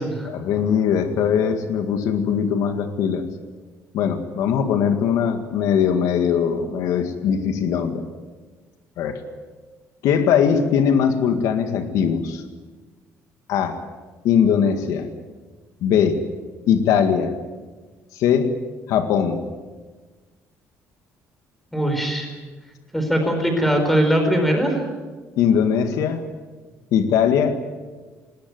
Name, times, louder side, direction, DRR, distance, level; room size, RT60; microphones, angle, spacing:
voice 1, 0.3-3.3 3.9-8.1 9.0-9.2 10.0-12.4 13.5-13.8 14.2-15.1 15.8-16.2 16.7-17.3 18.1-18.5 18.9-19.4 25.4-26.3 26.9-27.7, left 7 dB, 75° left, 7 dB, 2.0 m, -20 dB
voice 2, 21.7-22.3 22.9-24.8, right 1 dB, 5° left, 4 dB, 4.3 m, -20 dB
20.5 x 19.0 x 9.5 m, 1.3 s
cardioid pair, 180°, 6 cm